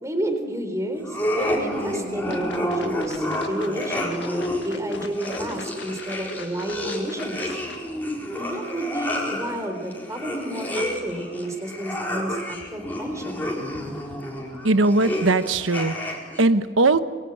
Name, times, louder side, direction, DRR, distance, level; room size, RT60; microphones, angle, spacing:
voice 1, 0.0-7.5 8.4-13.4, right 1 dB, 15° right, 6 dB, 4.0 m, -31 dB
sound 1, 1.0-16.4, equal, 10° left, 4.4 m, -30 dB
sound 2, 2.3-7.8, left 5 dB, 65° left, 1.8 m, -42 dB
voice 2, 14.6-17.0, right 2 dB, 90° right, 12 dB, 1.2 m, -20 dB
27.0 x 22.5 x 8.9 m, 1.5 s
head